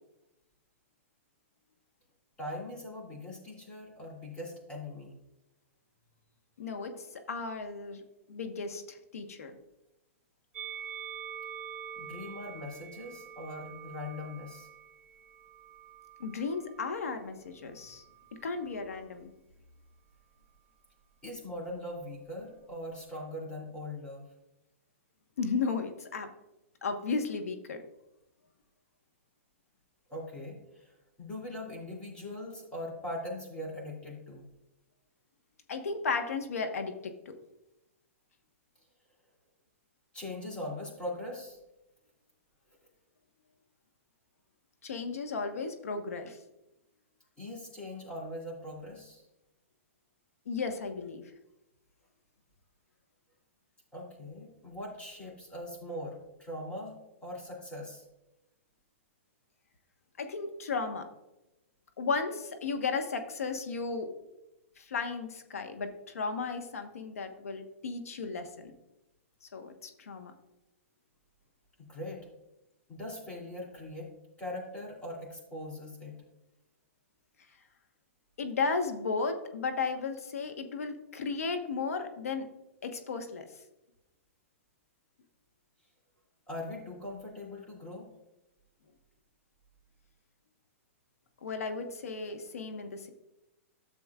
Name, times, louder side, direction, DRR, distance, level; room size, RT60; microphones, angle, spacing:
voice 1, 2.4-5.1 12.0-14.7 21.2-24.3 30.1-34.4 40.1-41.6 47.4-49.3 53.9-57.0 57.2-58.0 71.8-72.3 72.9-74.1 74.4-76.2 86.5-88.1, left 1 dB, 15° left, -3 dB, 2.8 m, -41 dB
voice 2, 6.6-8.0 8.3-9.5 16.2-18.0 18.4-19.3 25.4-26.3 26.8-27.8 35.7-37.1 44.8-46.4 50.5-51.2 60.2-61.1 62.0-64.1 64.8-68.7 69.4-70.3 78.4-82.5 82.8-83.5 91.4-93.1, left 4 dB, 85° left, 6 dB, 1.2 m, -34 dB
Musical instrument, 10.5-16.9 17.8-18.8, right 8 dB, 20° right, 2.8 m, -46 dB
13.0 x 7.0 x 2.4 m, 0.95 s
hypercardioid pair, 145°, 8 cm